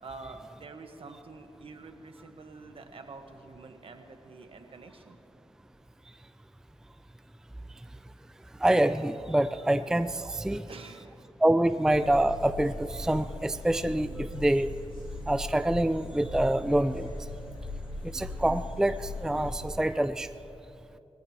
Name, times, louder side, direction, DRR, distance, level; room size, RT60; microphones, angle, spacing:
voice 1, 0.0-5.2 10.4-11.3, right 3 dB, 60° right, 5 dB, 1.4 m, -47 dB
voice 2, 8.6-10.6 11.4-14.7 15.3-17.1 18.1-20.3, right 1 dB, 5° right, 12 dB, 0.4 m, -26 dB
sound 1, 11.9-19.7, left 2 dB, 50° left, 3.0 m, -39 dB
21.5 x 16.0 x 3.0 m, 2.9 s
cardioid pair, 70°, 11 cm